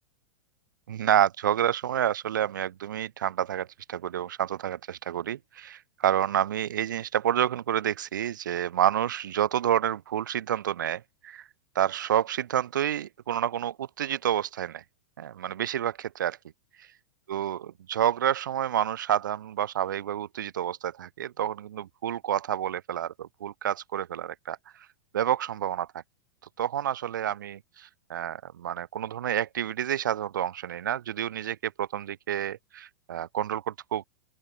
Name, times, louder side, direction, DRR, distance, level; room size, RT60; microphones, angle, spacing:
voice 1, 0.9-11.5 11.7-14.8 15.2-16.4 17.3-24.9 25.1-26.0 26.6-34.1, right 10 dB, 60° right, 2.9 m, -29 dB
open air
figure-of-eight pair, 100°, 12 cm